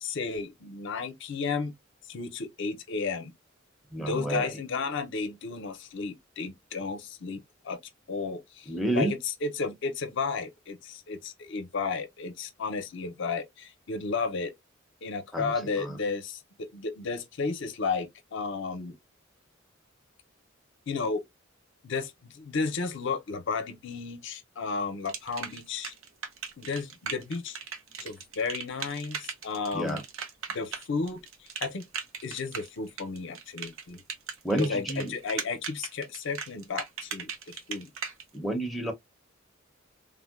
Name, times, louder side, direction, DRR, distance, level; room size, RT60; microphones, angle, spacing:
voice 1, 0.0-1.7 2.1-3.3 4.0-7.4 7.6-7.8 8.1-14.5 15.0-19.0 20.9-21.2 21.8-25.9 26.6-27.6 28.0-30.0 30.5-31.9 32.2-34.0 34.5-37.9, left 4 dB, 65° left, 0.6 m, -33 dB
voice 2, 3.9-4.6 8.7-9.1 15.3-16.0 29.7-30.0 34.4-35.1 38.3-38.9, right 1 dB, ahead, 0.6 m, -30 dB
sound 1, 25.1-38.2, right 6 dB, 90° right, 0.7 m, -38 dB
3.5 x 2.1 x 2.3 m
head